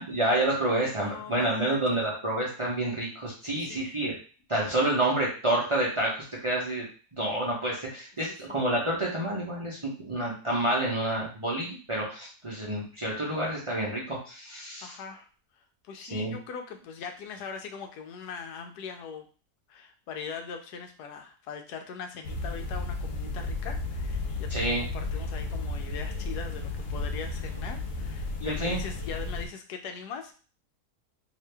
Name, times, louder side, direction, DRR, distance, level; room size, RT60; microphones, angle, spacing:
voice 1, 0.0-4.2 4.5-6.9 7.1-15.0 16.0-16.3 24.5-24.8 28.4-28.8, right 1 dB, 30° right, -5 dB, 0.6 m, -29 dB
voice 2, 1.0-1.8 3.4-3.8 8.3-8.5 14.8-15.3 15.9-19.3 19.7-24.5 24.8-30.3, left 6 dB, 90° left, 5 dB, 1.2 m, -41 dB
sound 1, 22.2-29.5, left 3 dB, 65° left, 0.8 m, -33 dB
2.8 x 2.7 x 3.3 m, 0.38 s
omnidirectional pair, 1.7 m